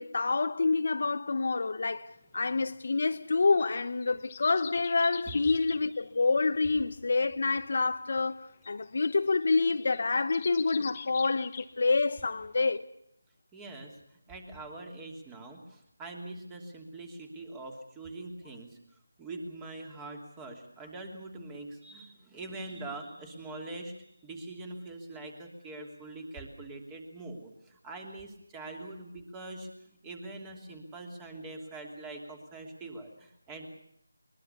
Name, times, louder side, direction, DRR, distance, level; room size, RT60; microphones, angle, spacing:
voice 1, 0.0-2.1 2.3-12.9, left 3 dB, 50° left, 0.9 m, -27 dB
sound 1, 2.3-12.3 12.7-12.8, left 7 dB, 25° left, 1.3 m, -46 dB
voice 2, 13.5-14.0 14.3-18.8 19.2-33.7, right 2 dB, 10° right, 2.9 m, -43 dB
22.5 x 21.5 x 6.9 m
figure-of-eight pair, 160°, 0 cm